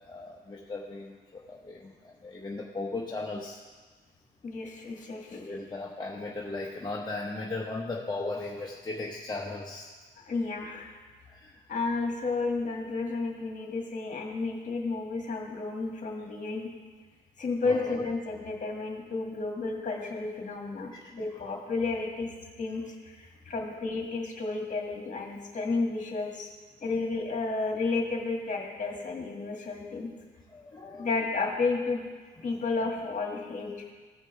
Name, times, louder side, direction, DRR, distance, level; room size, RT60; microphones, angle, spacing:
voice 1, 0.1-3.6 5.3-9.9 11.3-11.6 17.6-18.0 30.5-31.1, left 2 dB, 20° left, -3 dB, 0.9 m, -37 dB
voice 2, 4.4-5.4 10.2-10.9 11.7-16.7 17.4-22.3 22.6-26.5 26.8-30.1 31.0-32.0 32.4-33.7, left 3 dB, 40° left, 0 dB, 1.8 m, -32 dB
15.5 x 5.2 x 3.3 m, 1.4 s
cardioid pair, 90°, 20 cm